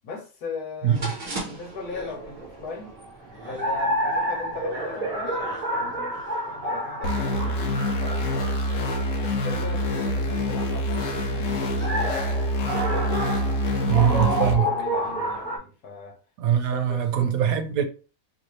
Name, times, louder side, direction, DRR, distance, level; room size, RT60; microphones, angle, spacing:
voice 1, 0.0-2.9 3.4-5.4 5.8-8.6 9.2-12.3 14.3-16.2 16.5-17.3, left 4 dB, 80° left, 1.5 m, -39 dB
sound 1, 0.8-1.3 1.8-2.2 3.3-3.8 5.2-5.7 7.1-7.7 8.5-9.0 10.0-10.6 11.6-12.3, right 1 dB, 10° left, 0.9 m, -45 dB
sound 2, 0.9-15.6, right 1 dB, 30° right, 0.8 m, -30 dB
sound 3, 7.0-14.5, left 1 dB, 65° left, 1.0 m, -26 dB
voice 2, 13.9-14.7 16.4-17.8, right 9 dB, 75° right, 1.0 m, -22 dB
3.0 x 2.7 x 3.1 m
omnidirectional pair, 1.6 m